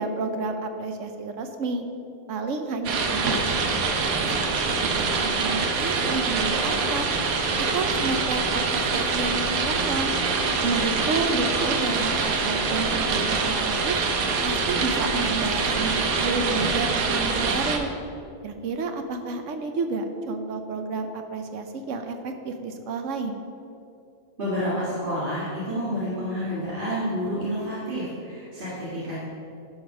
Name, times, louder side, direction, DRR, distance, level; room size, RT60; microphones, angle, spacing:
voice 1, 0.0-1.9 2.3-3.6 4.0-7.1 7.6-10.1 10.6-14.0 14.4-17.9 18.4-23.4, right 3 dB, 65° right, 6 dB, 1.1 m, -30 dB
sound 1, 2.8-17.8, right 4 dB, 80° right, 1.3 m, -25 dB
voice 2, 24.4-29.3, equal, 40° right, -9 dB, 2.1 m, -29 dB
11.0 x 5.2 x 5.9 m, 2.6 s
omnidirectional pair, 1.5 m